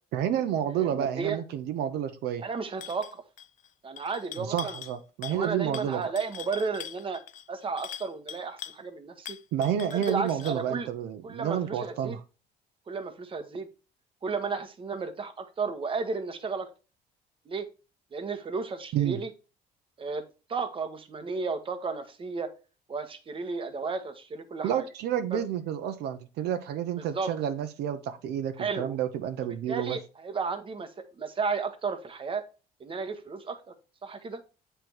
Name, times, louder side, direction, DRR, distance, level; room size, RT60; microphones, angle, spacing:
voice 1, 0.1-2.4 4.4-6.0 9.5-12.2 18.9-19.2 24.6-30.0, right 10 dB, 80° right, 0.8 m, -30 dB
voice 2, 0.7-1.4 2.4-3.2 3.8-4.8 5.3-7.2 7.5-9.4 9.9-10.9 11.2-12.2 12.9-13.7 14.2-16.7 17.5-17.7 18.1-19.3 20.0-20.2 20.5-22.5 22.9-24.8 25.3-25.4 27.0-27.3 28.6-29.0 29.7-32.5 32.8-33.7 34.0-34.4, right 4 dB, 30° right, 1.0 m, -33 dB
sound 1, 2.8-3.1 3.4-3.7 4.0-5.0 5.2-5.5 5.7-8.8 9.3-10.6, left 10 dB, 50° left, 0.5 m, -42 dB
7.9 x 3.4 x 4.4 m
cardioid pair, 110°, 17 cm